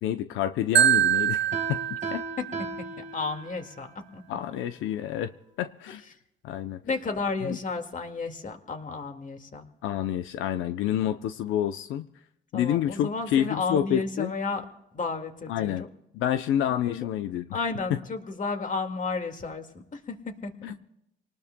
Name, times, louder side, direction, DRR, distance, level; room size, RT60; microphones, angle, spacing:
voice 1, 0.0-1.8 2.1-2.2 4.3-5.3 5.6-6.0 6.4-6.8 7.4-7.6 9.8-12.1 12.5-14.3 15.5-15.9 16.1-17.5 20.6-20.7, left 11 dB, 90° left, 9 dB, 0.6 m, -28 dB
Marimba xylophone, 0.7-2.8, right 11 dB, 65° right, 0.6 m, -24 dB
Piano, 1.5-3.8, right 3 dB, 35° right, 1.7 m, -37 dB
voice 2, 3.0-3.9 4.1-4.2 6.8-9.7 12.5-14.6 14.9-15.9 16.7-17.1 17.5-20.5, left 4 dB, 40° left, 5 dB, 2.0 m, -32 dB
26.5 x 19.5 x 2.2 m, 0.81 s
cardioid pair, 90°, 20 cm